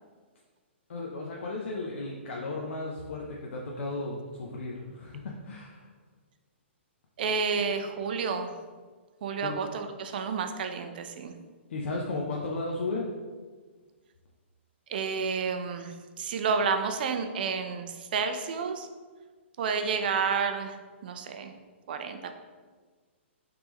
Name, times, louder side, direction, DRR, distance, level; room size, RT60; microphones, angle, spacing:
voice 1, 0.9-5.8 9.4-9.6 11.7-13.1, left 2 dB, 75° left, -2 dB, 0.5 m, -34 dB
voice 2, 7.2-8.5 9.2-11.3 14.9-18.9 19.6-20.8 21.0-21.5 21.9-22.3, right 5 dB, 45° right, 7 dB, 0.3 m, -30 dB
3.5 x 3.3 x 3.0 m, 1.4 s
hypercardioid pair, 165°, 7 cm